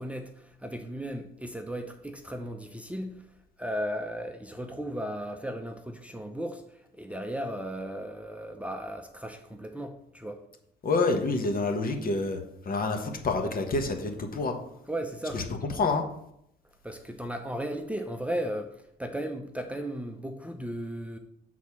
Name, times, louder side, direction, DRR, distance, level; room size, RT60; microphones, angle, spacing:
voice 1, 0.0-3.2 3.6-10.4 14.9-15.5 16.8-21.2, equal, 5° right, 4 dB, 0.7 m, -36 dB
voice 2, 10.8-14.5 15.3-15.4 15.8-16.0, left 3 dB, 45° left, 4 dB, 1.3 m, -28 dB
6.5 x 4.1 x 6.1 m, 0.76 s
cardioid pair, 90°, 20 cm